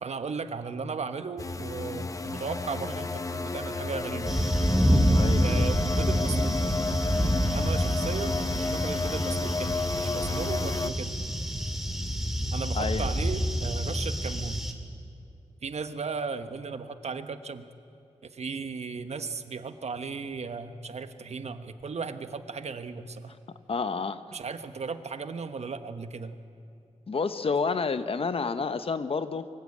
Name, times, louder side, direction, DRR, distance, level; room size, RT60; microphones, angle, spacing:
voice 1, 0.0-4.5 5.4-6.6 7.5-11.1 12.5-14.6 15.6-17.6 18.2-23.3 24.3-26.4, right 5 dB, 65° right, 9 dB, 1.1 m, -36 dB
sound 1, 1.4-10.9, left 3 dB, 25° left, 0.8 m, -31 dB
sound 2, 4.3-14.7, equal, 5° right, 2.1 m, -27 dB
voice 2, 5.1-5.6 12.7-13.1 23.7-24.2 27.1-29.5, left 4 dB, 50° left, 11 dB, 1.0 m, -29 dB
24.0 x 15.0 x 8.6 m, 2.7 s
wide cardioid pair, 100°, 12 cm